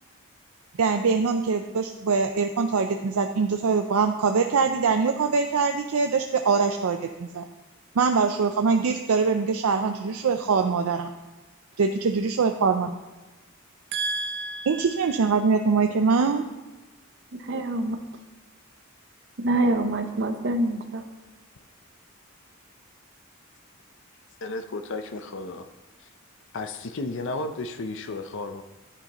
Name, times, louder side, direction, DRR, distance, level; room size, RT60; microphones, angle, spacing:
voice 1, 0.8-7.4 8.0-11.1 11.8-13.0 14.7-16.4, right 5 dB, 80° right, 6 dB, 0.5 m, -23 dB
voice 2, 13.9-15.0 17.4-18.0 19.4-21.0, right 2 dB, 55° right, 6 dB, 0.8 m, -26 dB
voice 3, 24.4-25.7 26.5-28.6, left 2 dB, 60° left, 8 dB, 0.6 m, -33 dB
10.5 x 9.7 x 3.0 m, 1.1 s
head